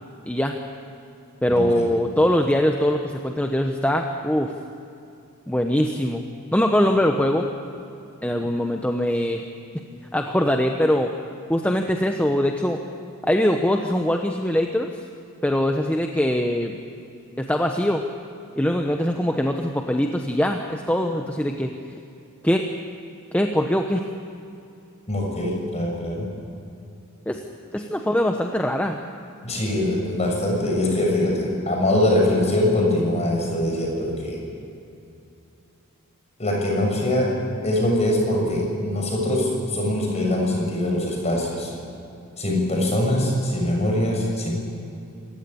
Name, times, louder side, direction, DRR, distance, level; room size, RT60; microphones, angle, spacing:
voice 1, 0.2-0.6 1.4-4.5 5.5-6.2 6.5-7.5 8.2-9.4 10.1-11.1 11.5-12.8 13.2-14.9 15.4-16.7 17.4-18.0 18.6-21.7 22.4-22.6 23.3-24.0 27.3-27.4 27.7-29.0, equal, 5° left, 3 dB, 1.0 m, -22 dB
voice 2, 1.5-1.8 25.1-26.3 29.4-34.4 36.4-37.3 37.6-41.7 42.4-44.5, left 1 dB, 30° left, -1 dB, 7.0 m, -23 dB
28.0 x 16.0 x 9.8 m, 2.7 s
head